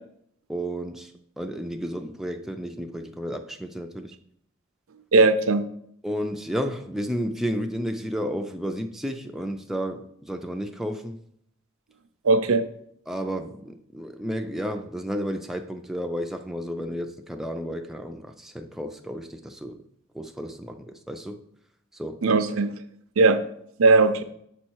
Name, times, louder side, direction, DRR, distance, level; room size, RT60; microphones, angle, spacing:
voice 1, 0.5-4.1 6.0-11.2 13.1-19.8 20.1-21.4 21.9-22.4, equal, ahead, 0.4 m, -32 dB
voice 2, 5.1-5.6 12.2-12.6 22.2-22.7 23.2-23.4 23.8-24.2, right 3 dB, 85° right, 0.6 m, -18 dB
7.2 x 4.3 x 4.6 m
head